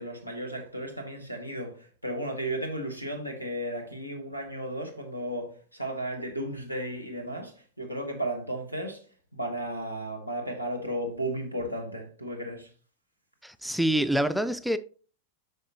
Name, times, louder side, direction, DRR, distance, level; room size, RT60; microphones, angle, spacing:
voice 1, 0.0-9.1 9.3-12.7, right 1 dB, 90° left, 1.5 m, -34 dB
voice 2, 13.4-14.8, right 1 dB, ahead, 0.3 m, -26 dB
8.4 x 5.2 x 3.0 m
figure-of-eight pair, 90°, 0 cm